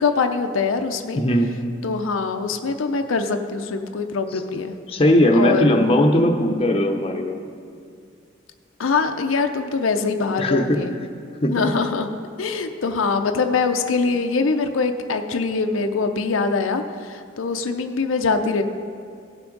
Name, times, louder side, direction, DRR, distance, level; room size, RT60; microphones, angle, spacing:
voice 1, 0.0-1.2 1.8-4.8 5.3-5.9 8.8-10.9 11.5-12.1 12.4-18.6, left 4 dB, 85° left, 6 dB, 0.5 m, -23 dB
voice 2, 1.1-1.5 4.3-4.4 4.9-7.4 10.4-10.8 11.4-11.5, left 1 dB, 30° left, 2 dB, 0.7 m, -18 dB
16.5 x 5.9 x 3.9 m, 2.4 s
head